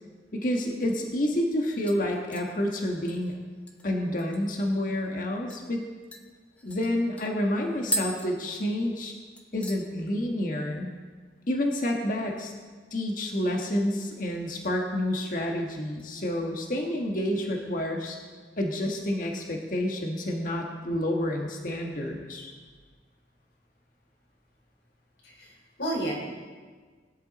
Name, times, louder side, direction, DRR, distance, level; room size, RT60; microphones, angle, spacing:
voice 1, 0.3-3.3 3.8-5.9 6.6-9.1 9.5-10.9 11.5-12.5 12.9-18.2 18.6-22.5, left 1 dB, 50° left, 1 dB, 1.5 m, -29 dB
sound 1, 1.5-1.6 1.9-4.7 5.0-5.1 5.5-5.7 6.1-9.1 9.4-9.9 10.2-10.6 10.9-11.0 13.1-13.7 14.0-14.8 15.2-15.4 16.0-16.9 17.3-17.4, right 1 dB, 5° left, 0.9 m, -39 dB
voice 2, 25.2-26.1, right 1 dB, 85° left, -3 dB, 4.7 m, -32 dB
19.5 x 10.5 x 4.2 m, 1.5 s
head